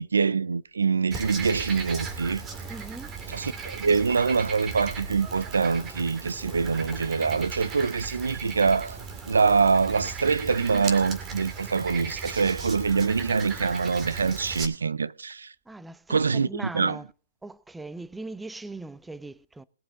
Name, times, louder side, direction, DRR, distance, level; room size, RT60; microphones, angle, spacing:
voice 1, 0.0-2.4 3.3-9.0 9.3-15.5 16.1-17.0, right 5 dB, 85° right, 0.5 m, -25 dB
Frog, 1.1-14.7, right 5 dB, 25° right, 2.1 m, -37 dB
voice 2, 2.7-3.1 15.7-17.1 17.4-19.6, right 2 dB, 5° right, 0.5 m, -40 dB
sound 1, 6.5-7.2 10.1-10.8 12.4-12.5, left 5 dB, 15° left, 3.4 m, -53 dB
20.5 x 7.4 x 3.7 m
hypercardioid pair, 130°, 0 cm